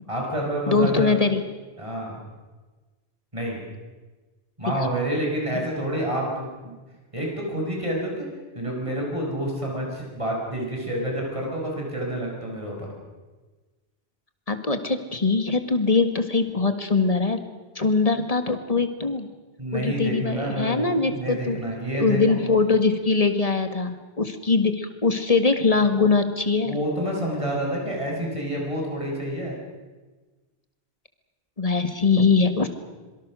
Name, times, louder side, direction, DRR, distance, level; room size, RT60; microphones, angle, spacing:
voice 1, 0.1-1.1 1.8-2.2 3.3-3.6 4.6-6.7 7.1-8.3 8.5-12.9 19.6-22.4 26.7-29.6, right 1 dB, 30° right, -1 dB, 6.4 m, -28 dB
voice 2, 0.7-1.4 4.7-4.9 5.5-5.6 14.5-17.4 17.8-19.3 19.7-21.6 21.9-26.8 31.6-32.7, left 4 dB, 35° left, 8 dB, 2.0 m, -22 dB
26.0 x 24.0 x 6.5 m, 1.3 s
omnidirectional pair, 1.0 m